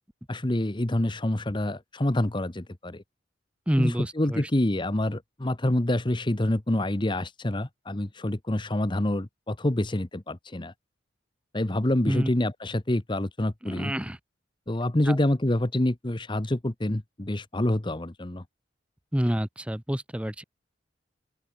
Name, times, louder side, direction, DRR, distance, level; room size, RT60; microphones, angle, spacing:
voice 1, 0.3-3.0 3.8-10.7 11.5-13.9 14.7-18.4, left 1 dB, 25° left, 1.0 m, -27 dB
voice 2, 3.7-4.4 12.1-12.3 13.6-14.2 15.1-15.2 19.1-20.4, equal, 5° right, 0.9 m, -28 dB
open air
head